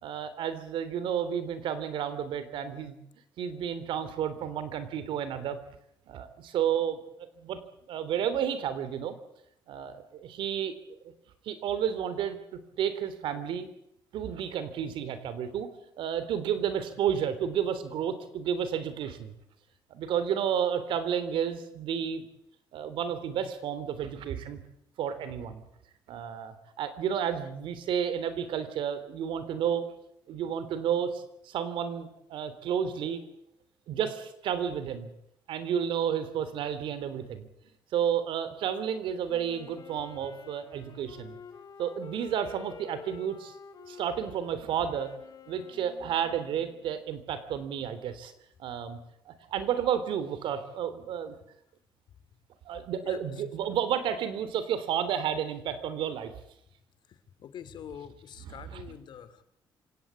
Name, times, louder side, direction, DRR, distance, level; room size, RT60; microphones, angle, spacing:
voice 1, 0.0-3.0 3.4-5.6 6.1-7.0 7.4-7.6 7.9-9.1 9.7-11.0 11.4-13.7 14.1-15.7 16.0-19.3 19.9-22.3 22.7-24.6 25.0-25.6 26.1-29.8 30.3-33.2 33.9-35.1 35.5-37.5 37.9-41.4 41.8-43.5 43.9-45.1 45.5-48.3 48.6-49.0 49.2-51.3 52.6-56.3 58.4-58.8, right 8 dB, 80° right, 12 dB, 3.3 m, -31 dB
Wind instrument woodwind instrument, 39.2-47.0, left 5 dB, 45° left, 3.1 m, -49 dB
voice 2, 57.4-59.4, left 8 dB, 65° left, 12 dB, 2.7 m, -44 dB
27.0 x 18.0 x 8.4 m, 0.77 s
cardioid pair, 115°, 8 cm